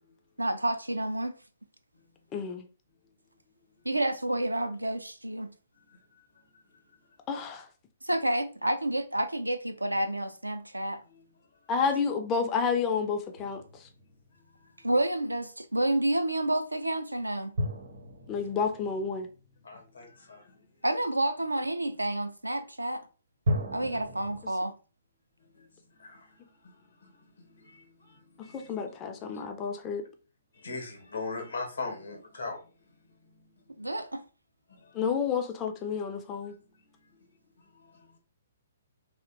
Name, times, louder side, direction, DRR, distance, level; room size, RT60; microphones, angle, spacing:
voice 1, 0.4-1.3 3.8-5.5 8.0-11.0 14.8-17.5 20.8-23.0 23.7-24.7 33.8-34.2, right 1 dB, 85° right, 0.3 m, -29 dB
voice 2, 2.3-2.6 7.3-7.6 11.7-13.6 18.3-19.3 28.7-30.0 35.0-36.5, left 6 dB, 25° left, 0.3 m, -30 dB
voice 3, 5.7-7.2 11.0-11.3 14.3-14.9 19.6-20.8 25.4-29.0 29.3-29.4 30.5-32.7 33.0-33.8 34.7-35.2 36.4-38.2, left 3 dB, 70° left, 0.8 m, -43 dB
sound 1, 13.4-14.7 17.5-20.1 23.5-24.4, left 1 dB, 70° right, 0.7 m, -35 dB
2.7 x 2.1 x 2.5 m
figure-of-eight pair, 125°, 0 cm